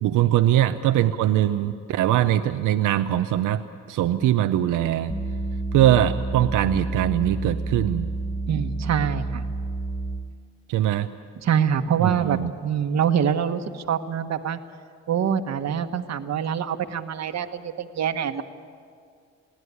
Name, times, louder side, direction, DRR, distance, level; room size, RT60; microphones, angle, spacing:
voice 1, 0.0-3.6 3.9-5.1 5.7-8.1 10.7-11.1 12.0-12.5, right 12 dB, 85° right, 9 dB, 0.7 m, -21 dB
sound 1, 5.1-10.4, right 2 dB, 10° left, 1.4 m, -29 dB
voice 2, 8.5-9.4 11.4-14.6 15.1-18.4, right 8 dB, 60° right, 8 dB, 1.3 m, -25 dB
22.5 x 16.5 x 9.5 m, 2.2 s
cardioid pair, 90°, 30 cm